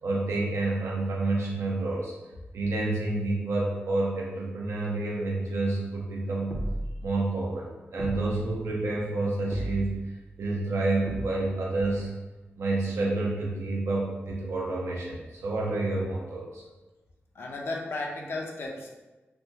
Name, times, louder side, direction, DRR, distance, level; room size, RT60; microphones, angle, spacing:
voice 1, 0.0-2.1 2.5-6.6 7.0-12.1 12.6-16.6, right 2 dB, 90° right, -4 dB, 0.7 m, -29 dB
sound 1, 6.5-7.1 8.0-8.6 9.5-10.1 11.1-11.7, equal, ahead, 0.4 m, -35 dB
voice 2, 17.3-18.9, left 2 dB, 65° left, -1 dB, 0.5 m, -34 dB
3.4 x 2.2 x 2.7 m, 1.2 s
wide cardioid pair, 100°, 4 cm